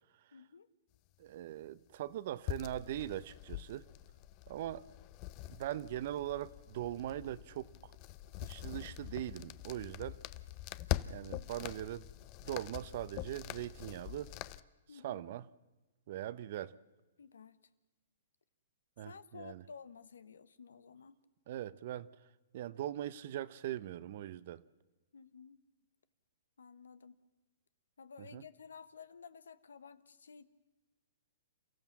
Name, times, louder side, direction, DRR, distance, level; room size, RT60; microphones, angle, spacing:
voice 1, 0.3-0.7 14.9-15.2 17.2-17.6 19.0-21.2 25.1-25.6 26.6-27.2 28.0-30.4, left 6 dB, 85° left, 1.1 m, -53 dB
voice 2, 1.2-3.9 4.5-4.9 5.5-7.9 8.4-10.2 11.0-12.1 12.4-14.3 15.0-15.5 16.1-16.8 19.0-19.6 21.5-22.1 22.5-24.6 28.2-28.4, right 12 dB, 55° right, 0.8 m, -41 dB
sound 1, 2.5-14.6, left 15 dB, 35° left, 0.7 m, -44 dB
29.0 x 15.0 x 7.3 m
hypercardioid pair, 130°, 0 cm